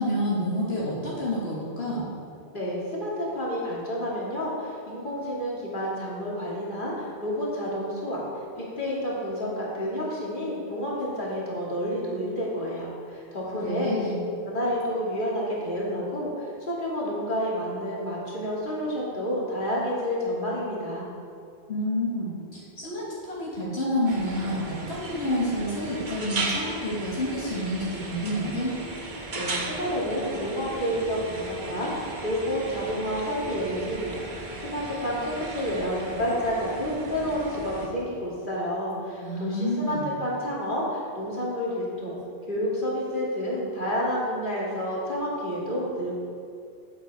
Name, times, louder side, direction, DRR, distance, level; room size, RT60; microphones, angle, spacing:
voice 1, 0.0-2.1 13.6-14.2 21.7-28.8 39.2-40.1, left 1 dB, 75° left, -7 dB, 1.9 m, -29 dB
voice 2, 2.5-8.2 8.6-14.2 14.4-21.0 29.3-42.2 42.5-46.1, equal, 50° left, -5 dB, 2.3 m, -29 dB
sound 1, 24.1-37.9, right 2 dB, 50° right, 1.2 m, -36 dB
9.5 x 7.7 x 4.7 m, 2.3 s
omnidirectional pair, 1.1 m